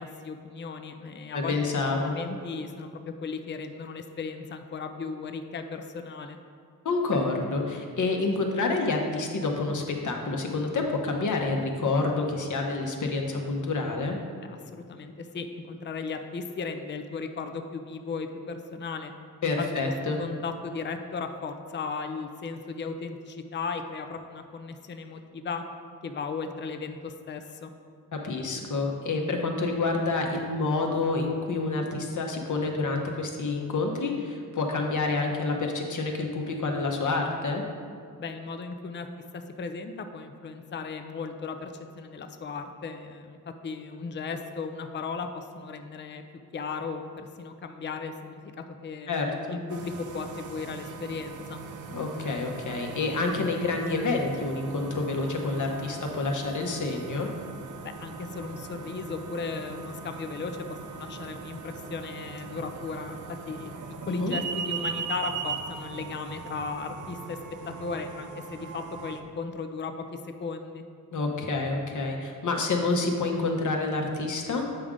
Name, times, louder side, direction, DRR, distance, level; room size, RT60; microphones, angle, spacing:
voice 1, 0.0-1.6 1.9-6.4 14.5-19.1 20.2-25.6 26.0-27.7 38.2-43.4 43.6-46.2 46.5-48.5 48.8-49.1 49.5-51.6 57.8-63.2 63.5-63.7 64.1-67.4 67.7-70.8, left 4 dB, 30° left, 6 dB, 0.5 m, -36 dB
voice 2, 1.3-2.1 6.8-14.2 19.4-20.2 28.1-37.6 49.1-49.6 51.9-57.3 64.1-64.3 71.1-74.7, left 3 dB, 55° left, 2 dB, 1.0 m, -28 dB
sound 1, 49.7-69.2, right 5 dB, 55° right, 0.6 m, -39 dB
7.8 x 5.0 x 3.7 m, 2.2 s
cardioid pair, 75°, 36 cm